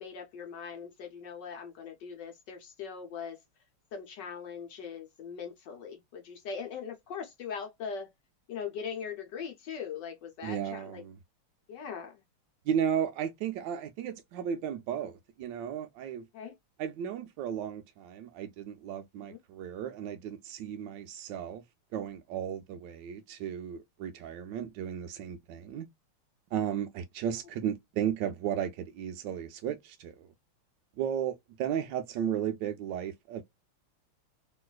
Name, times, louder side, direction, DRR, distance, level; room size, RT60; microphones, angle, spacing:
voice 1, 0.0-3.4 3.9-8.1 8.5-11.0 11.7-12.2 16.3-16.5 19.3-19.4, left 6 dB, 65° left, 1.2 m, -40 dB
voice 2, 10.4-11.2 12.6-16.2 16.8-21.6 21.9-25.9 26.5-30.3 31.0-33.4, right 9 dB, 75° right, 1.0 m, -34 dB
3.1 x 3.0 x 2.3 m
omnidirectional pair, 2.4 m